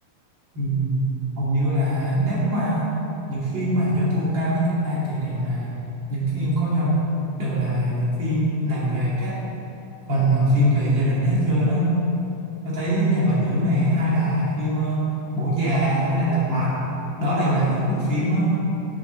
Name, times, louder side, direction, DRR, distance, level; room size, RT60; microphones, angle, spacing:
voice 1, 0.5-1.0 1.3-2.9 3.3-5.8 6.1-7.1 7.4-9.4 10.1-11.9 12.6-15.1 15.3-16.8 17.2-18.6, right 1 dB, 35° right, -8 dB, 3.2 m, -22 dB
11.0 x 8.4 x 4.0 m, 2.9 s
omnidirectional pair, 3.7 m